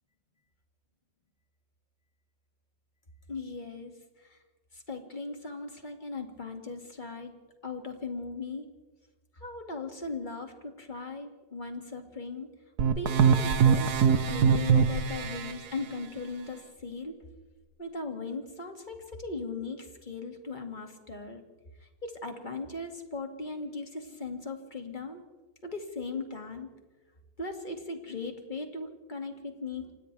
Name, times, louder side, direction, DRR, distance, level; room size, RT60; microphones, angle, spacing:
voice 1, 3.3-4.4 4.7-7.3 7.6-8.7 9.3-12.5 13.0-17.2 17.8-21.4 21.8-25.2 25.6-26.7 27.4-29.9, left 3 dB, 25° left, 4 dB, 2.4 m, -38 dB
sound 1, 12.8-15.5, right 6 dB, 65° right, 1.5 m, -23 dB
29.0 x 26.5 x 3.4 m, 1.2 s
omnidirectional pair, 1.9 m